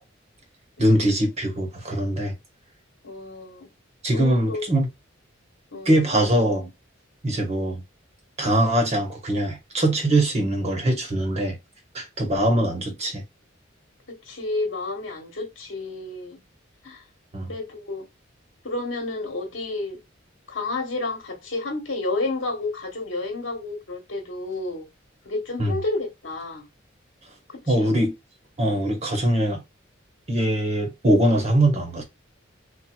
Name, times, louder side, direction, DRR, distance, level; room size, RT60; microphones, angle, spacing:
voice 1, 0.8-2.3 4.0-4.9 5.8-6.7 7.2-7.8 8.4-11.6 11.9-13.2 17.3-17.5 25.6-25.8 27.7-28.1 28.6-29.6 30.3-32.0, right 1 dB, 35° right, 1.0 m, -22 dB
voice 2, 3.0-3.7 4.1-4.6 5.7-5.9 14.1-16.4 16.8-17.0 17.5-18.1 18.6-20.0 20.5-24.9 25.2-26.6 27.5-27.9, left 2 dB, 75° left, 1.2 m, -30 dB
4.3 x 2.3 x 2.3 m
head